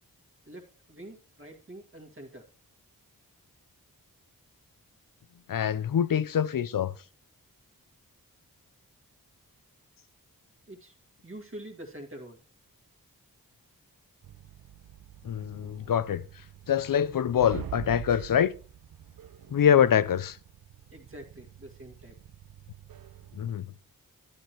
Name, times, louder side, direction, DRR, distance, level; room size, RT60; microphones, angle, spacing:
voice 1, 0.5-2.4 10.7-10.9 11.2-12.4 20.9-22.2, right 1 dB, 35° right, 1.9 m, -45 dB
voice 2, 5.5-6.9 15.2-16.2 16.7-18.5 19.5-20.4 23.4-23.7, left 8 dB, 65° left, 0.6 m, -24 dB
sound 1, 14.2-23.5, right 11 dB, 70° right, 0.6 m, -46 dB
11.0 x 9.9 x 2.9 m
cardioid pair, 60°, 36 cm